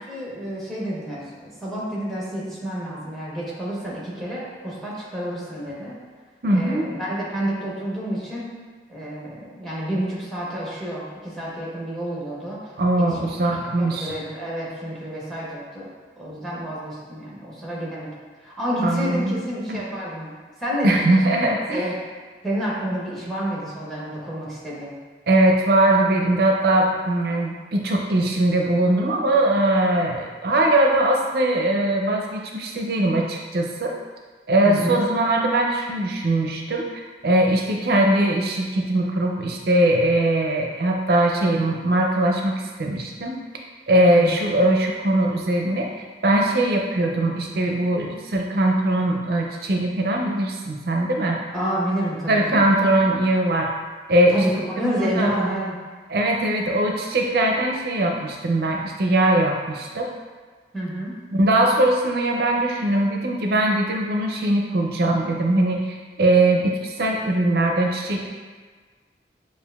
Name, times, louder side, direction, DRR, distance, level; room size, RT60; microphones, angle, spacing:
voice 1, 0.1-6.0 6.5-8.5 8.9-12.7 13.0-13.4 13.8-15.9 16.2-18.1 18.4-22.0 22.4-24.9 34.6-35.0 44.1-44.4 51.5-52.6 54.3-55.8 60.7-61.1, equal, ahead, -6 dB, 1.0 m, -29 dB
voice 2, 6.4-6.9 12.8-14.1 18.8-19.4 19.7-19.8 20.8-21.9 25.3-33.9 34.5-43.4 43.9-51.4 52.3-53.7 54.1-55.3 56.1-60.1 61.3-68.3, right 1 dB, 60° right, 1 dB, 0.5 m, -21 dB
6.9 x 2.4 x 2.3 m, 1.5 s
head